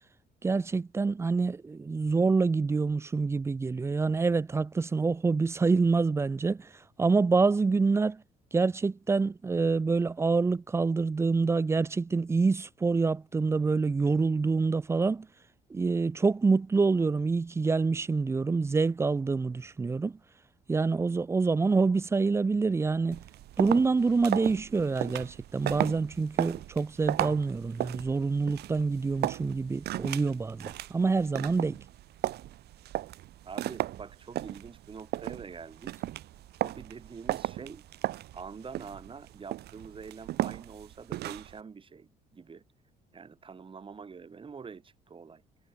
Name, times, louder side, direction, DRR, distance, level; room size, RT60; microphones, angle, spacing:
voice 1, 0.4-6.7 7.0-8.2 8.5-15.3 15.7-20.2 20.7-23.2 23.6-31.8, right 4 dB, 15° right, 0.4 m, -26 dB
sound 1, 23.1-41.6, right 15 dB, 75° right, 4.7 m, -36 dB
voice 2, 33.4-36.0 36.6-37.8 38.3-42.6 43.1-45.4, right 5 dB, 30° right, 6.0 m, -45 dB
cardioid pair, 110°, 17 cm